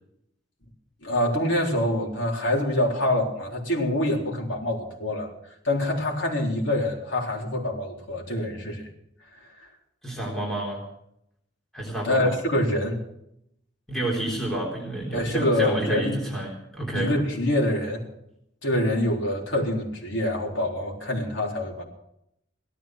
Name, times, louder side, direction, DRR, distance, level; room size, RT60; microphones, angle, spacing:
voice 1, 1.0-5.3 5.6-8.8 12.0-13.0 15.1-16.2 16.9-18.0 18.6-21.8, left 1 dB, 90° left, 0 dB, 4.0 m, -25 dB
voice 2, 10.0-10.8 11.7-12.3 13.9-17.1, right 1 dB, ahead, -3 dB, 3.8 m, -29 dB
17.0 x 13.0 x 6.1 m, 0.78 s
head